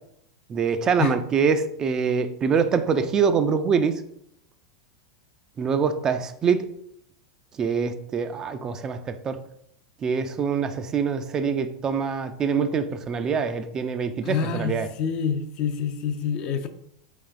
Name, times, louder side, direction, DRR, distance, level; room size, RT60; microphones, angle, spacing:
voice 1, 0.5-4.0 5.6-6.7 7.6-9.4 10.0-14.9, right 6 dB, 25° right, 0.3 m, -24 dB
voice 2, 14.2-16.7, left 6 dB, 45° left, 0.4 m, -27 dB
4.3 x 3.4 x 2.5 m
figure-of-eight pair, 90°, 2 cm